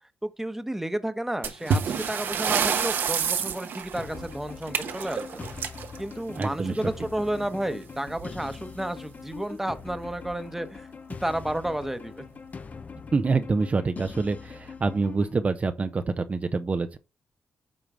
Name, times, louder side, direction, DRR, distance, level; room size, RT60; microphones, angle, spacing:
voice 1, 0.2-1.8 2.1-5.4 6.0-10.9 11.2-12.2, right 1 dB, 10° right, 1.1 m, -31 dB
sound 1, 1.4-6.8 8.1-8.2 8.5-8.6 9.3-9.4 10.1-10.3, right 6 dB, 75° right, 1.0 m, -28 dB
sound 2, 4.0-15.4, left 5 dB, 45° left, 0.7 m, -42 dB
voice 2, 6.4-6.9 13.1-17.0, right 4 dB, 40° right, 0.7 m, -26 dB
9.1 x 3.2 x 5.0 m
supercardioid pair, 60°, 4 cm